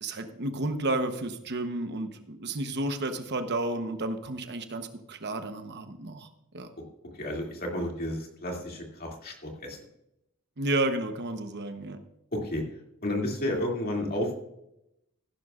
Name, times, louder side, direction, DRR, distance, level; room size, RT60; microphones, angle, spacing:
voice 1, 0.0-6.3 6.5-6.7 10.6-12.0, right 2 dB, 50° right, 8 dB, 0.9 m, -31 dB
voice 2, 7.2-9.8 12.3-12.6 13.0-14.4, left 1 dB, 45° left, 0 dB, 2.5 m, -31 dB
15.5 x 11.5 x 2.4 m, 0.83 s
head